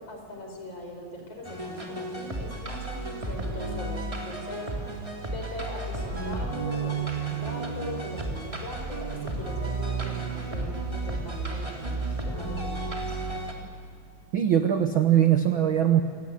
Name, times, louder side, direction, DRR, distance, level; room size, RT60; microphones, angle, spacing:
voice 1, 0.0-4.7 5.3-13.2, left 1 dB, 50° left, 2 dB, 5.6 m, -40 dB
sound 1, 1.4-13.5, right 3 dB, 10° right, 2.9 m, -32 dB
voice 2, 14.3-16.0, right 10 dB, 65° right, 7 dB, 1.3 m, -21 dB
29.0 x 17.5 x 9.5 m, 2.2 s
omnidirectional pair, 3.5 m